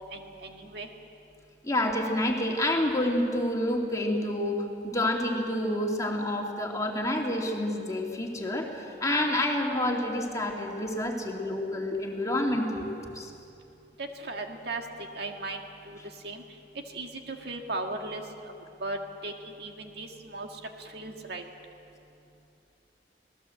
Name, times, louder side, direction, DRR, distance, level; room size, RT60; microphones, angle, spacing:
voice 1, 0.1-0.9 14.0-14.8 15.1-15.6 15.9-16.0 16.2-16.4 16.9-18.5 18.8-19.0 19.2-20.5 20.8-21.4, right 2 dB, 65° right, 3 dB, 1.8 m, -37 dB
voice 2, 1.6-13.3, left 1 dB, 20° left, 0 dB, 2.7 m, -28 dB
26.5 x 19.0 x 7.8 m, 2.7 s
head